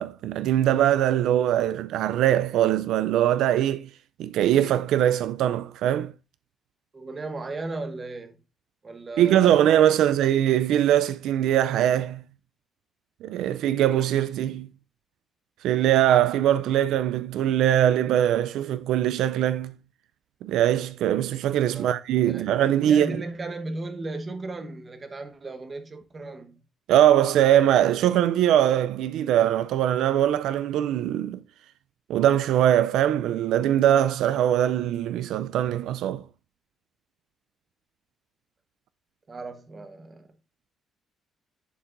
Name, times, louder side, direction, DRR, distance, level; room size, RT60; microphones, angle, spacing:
voice 1, 0.0-3.9 4.2-6.1 9.2-12.2 13.2-14.7 15.6-19.7 20.4-23.1 26.9-31.4 32.1-36.2, right 11 dB, 85° right, 0.3 m, -22 dB
voice 2, 6.9-8.4 8.8-10.2 21.7-22.0 22.2-22.5 22.9-26.6 39.3-40.3, right 2 dB, 25° right, 1.0 m, -36 dB
11.0 x 4.5 x 2.5 m
cardioid pair, 150°, 0 cm